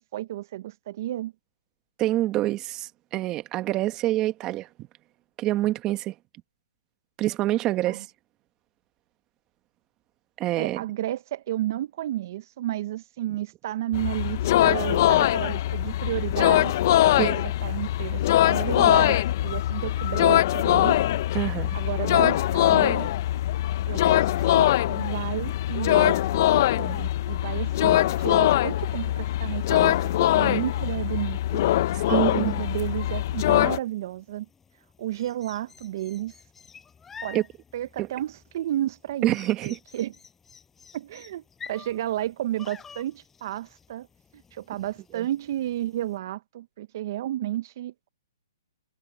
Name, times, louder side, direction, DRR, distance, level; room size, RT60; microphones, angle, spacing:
voice 1, 0.0-1.3 7.9-8.0 10.5-17.3 17.6-21.0 21.7-23.1 23.9-34.5 35.0-36.3 37.2-37.4 37.7-39.4 39.6-40.1 40.9-41.4 41.7-44.1 44.5-48.1, right 13 dB, 50° right, 1.0 m, -32 dB
voice 2, 2.0-4.7 5.4-6.1 7.2-8.1 10.4-10.8 17.2-17.5 21.3-21.8 31.9-32.6 37.3-37.4 38.0-38.1 39.2-39.8 45.1-45.3, right 15 dB, 25° right, 1.6 m, -26 dB
sound 1, 13.9-33.8, left 13 dB, 45° left, 0.9 m, -22 dB
sound 2, 29.6-46.2, left 6 dB, 10° left, 6.9 m, -50 dB
hypercardioid pair, 140°, 2 cm